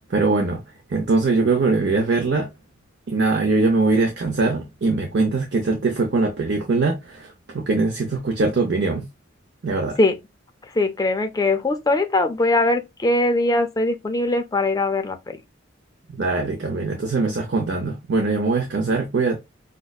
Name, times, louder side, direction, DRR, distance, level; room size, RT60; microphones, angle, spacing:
voice 1, 0.1-0.6 0.9-2.5 3.1-9.1 9.6-10.0 16.2-19.4, right 3 dB, 60° right, 0.6 m, -22 dB
voice 2, 10.8-15.4, left 2 dB, 20° left, 0.5 m, -21 dB
5.2 x 2.1 x 2.3 m
head